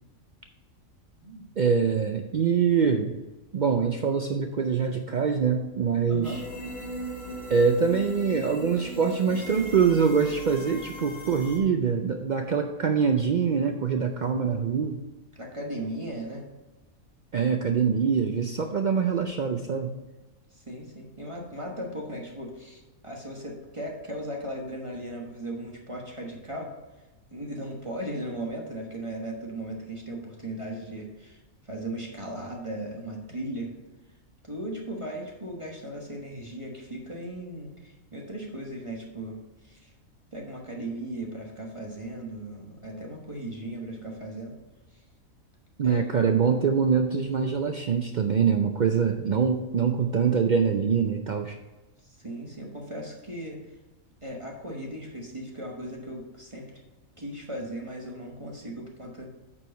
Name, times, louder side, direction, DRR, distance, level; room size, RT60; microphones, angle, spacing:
voice 1, 1.6-3.1 3.5-6.4 7.5-15.0 17.3-20.0 45.8-51.6, right 6 dB, 80° right, 5 dB, 0.4 m, -24 dB
voice 2, 6.1-6.4 15.4-16.5 20.5-26.7 27.3-31.4 31.6-33.7 34.4-39.4 39.6-39.9 40.3-44.5 45.8-46.0 52.0-53.6 54.2-56.7 57.2-59.3, right 1 dB, 25° right, -1 dB, 1.2 m, -37 dB
sound 1, 6.2-11.6, right 2 dB, 30° left, 1.3 m, -38 dB
8.7 x 4.6 x 5.2 m, 1.1 s
omnidirectional pair, 1.4 m